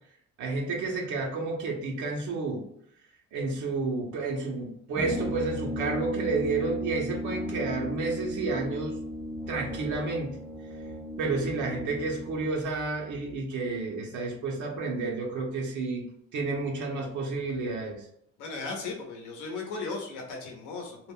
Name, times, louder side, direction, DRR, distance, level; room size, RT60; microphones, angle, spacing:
voice 1, 0.4-2.6 3.3-9.0 9.5-10.4 11.2-16.0 16.3-18.1, right 3 dB, 75° right, 0 dB, 0.7 m, -31 dB
Brass instrument, 4.9-12.4, equal, 10° left, 0.4 m, -35 dB
voice 2, 18.4-21.0, left 3 dB, 85° left, 0 dB, 0.8 m, -36 dB
2.3 x 2.1 x 3.4 m, 0.71 s
cardioid pair, 90°, 30 cm